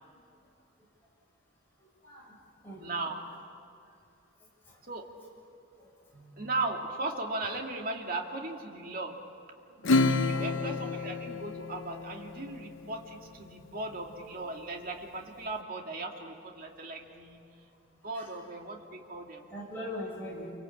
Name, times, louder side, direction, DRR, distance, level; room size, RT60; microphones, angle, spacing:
voice 1, 2.0-2.4 2.6-2.8 4.7-4.8 5.8-5.9 10.1-10.5 18.1-18.2 19.5-20.5, left 1 dB, 10° left, -4 dB, 7.5 m, -41 dB
voice 2, 2.8-3.2 4.9-5.1 6.1-9.2 10.1-17.4 17.9-19.4, right 2 dB, 45° right, 1 dB, 2.4 m, -37 dB
Acoustic guitar / Strum, 9.8-12.8, left 3 dB, 65° left, 0.7 m, -29 dB
27.5 x 24.5 x 8.7 m, 2.5 s
head